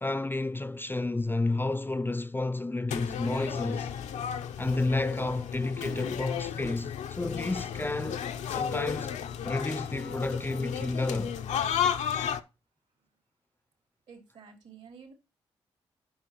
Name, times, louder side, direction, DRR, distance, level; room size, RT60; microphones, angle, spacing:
voice 1, 0.0-3.9 4.6-9.2 9.4-11.4, left 2 dB, 15° left, 0.5 m, -31 dB
sound 1, 2.9-12.4, left 8 dB, 80° left, 0.6 m, -33 dB
voice 2, 14.1-15.1, right 6 dB, 75° right, 3.0 m, -50 dB
9.5 x 5.6 x 3.0 m
supercardioid pair, 45°, 12 cm